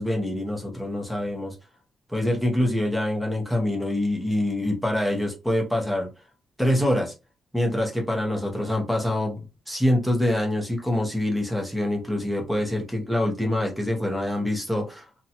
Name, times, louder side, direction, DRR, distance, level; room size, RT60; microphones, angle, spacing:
voice 1, 0.0-1.6 2.1-6.1 6.6-7.1 7.5-15.1, left 1 dB, ahead, 0.8 m, -25 dB
2.7 x 2.3 x 2.8 m
wide cardioid pair, 165°, 0 cm